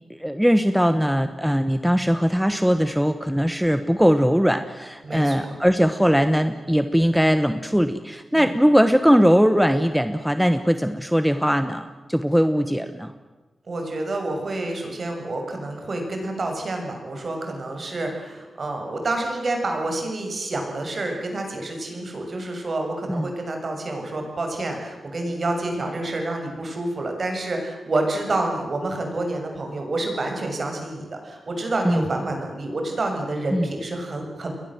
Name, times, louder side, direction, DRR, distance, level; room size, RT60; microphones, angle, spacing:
voice 1, 0.1-13.1 23.1-23.3 31.8-32.1 33.5-33.7, equal, ahead, 10 dB, 1.1 m, -20 dB
voice 2, 5.0-5.6 8.3-8.5 13.7-34.5, right 2 dB, 45° right, 3 dB, 6.9 m, -28 dB
30.0 x 22.0 x 7.7 m, 1.2 s
wide cardioid pair, 105°, 0 cm